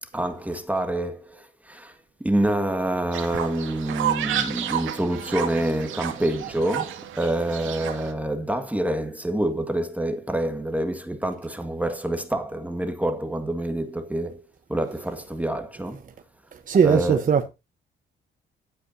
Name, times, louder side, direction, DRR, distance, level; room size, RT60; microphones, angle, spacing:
voice 1, 0.0-14.4 14.7-16.0 16.8-17.2, right 1 dB, 5° right, 1.8 m, -27 dB
Fowl, 3.1-8.1, right 10 dB, 85° right, 2.3 m, -31 dB
voice 2, 16.5-17.5, right 6 dB, 40° right, 1.1 m, -19 dB
14.5 x 8.7 x 2.8 m
cardioid pair, 90°, 20 cm